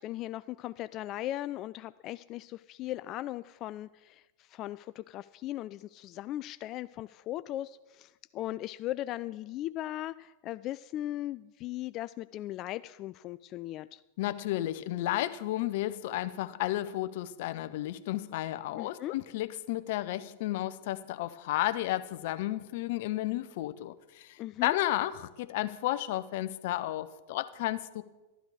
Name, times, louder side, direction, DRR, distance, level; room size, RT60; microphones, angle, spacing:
voice 1, 0.0-14.0 18.7-19.1 24.4-24.8, left 14 dB, 45° left, 0.3 m, -38 dB
voice 2, 14.2-28.0, left 15 dB, 60° left, 0.7 m, -32 dB
13.0 x 12.5 x 4.9 m
hypercardioid pair, 100°, 0 cm